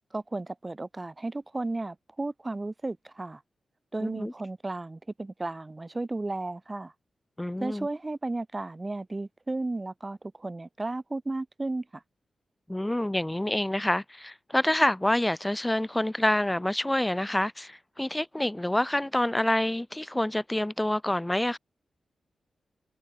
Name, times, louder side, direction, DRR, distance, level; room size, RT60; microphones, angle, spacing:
voice 1, 0.1-3.4 3.9-6.9 7.6-12.0, right 2 dB, 20° right, 5.2 m, -34 dB
voice 2, 4.0-4.3 7.4-7.9 12.7-21.6, left 1 dB, 10° left, 1.9 m, -27 dB
wide cardioid pair, 160°, 0 cm